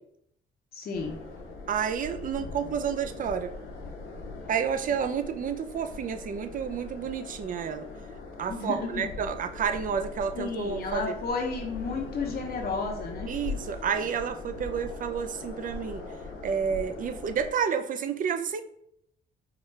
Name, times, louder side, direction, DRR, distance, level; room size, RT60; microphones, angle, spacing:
voice 1, 0.7-1.2 8.5-9.0 10.4-13.3, left 4 dB, 50° left, 0 dB, 0.7 m, -32 dB
sound 1, 0.9-17.5, left 3 dB, 85° left, 1.0 m, -41 dB
voice 2, 1.7-3.5 4.5-7.9 8.4-11.2 13.3-16.0 16.4-18.6, right 7 dB, 45° right, 9 dB, 0.4 m, -30 dB
4.6 x 2.3 x 3.2 m, 0.73 s
cardioid pair, 90°, 20 cm